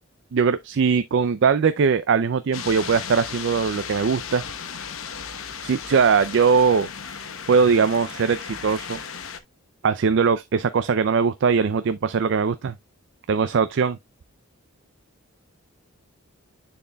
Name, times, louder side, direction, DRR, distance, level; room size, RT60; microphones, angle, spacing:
voice 1, 0.3-4.4 5.6-6.9 7.5-9.0 9.8-12.7 13.3-14.0, right 5 dB, 55° right, 0.4 m, -20 dB
sound 1, 2.5-9.4, left 7 dB, 65° left, 0.9 m, -35 dB
10.0 x 4.3 x 2.3 m
head